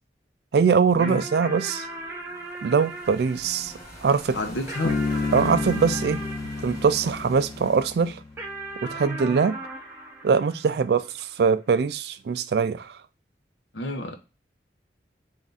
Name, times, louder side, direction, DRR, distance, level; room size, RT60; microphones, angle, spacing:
voice 1, 0.5-1.9 2.6-3.7 4.0-4.4 5.3-6.2 6.6-8.2 8.8-9.6 10.2-13.0, right 5 dB, 65° right, 0.3 m, -22 dB
sound 1, 1.0-7.7 8.4-11.2, right 2 dB, 10° right, 0.6 m, -38 dB
sound 2, 1.7-9.7, right 1 dB, 20° left, 1.2 m, -46 dB
voice 2, 4.3-5.0 13.7-14.2, left 1 dB, 85° left, 0.8 m, -29 dB
Bass guitar, 4.8-8.4, left 3 dB, 35° left, 0.4 m, -30 dB
3.5 x 2.5 x 3.9 m
head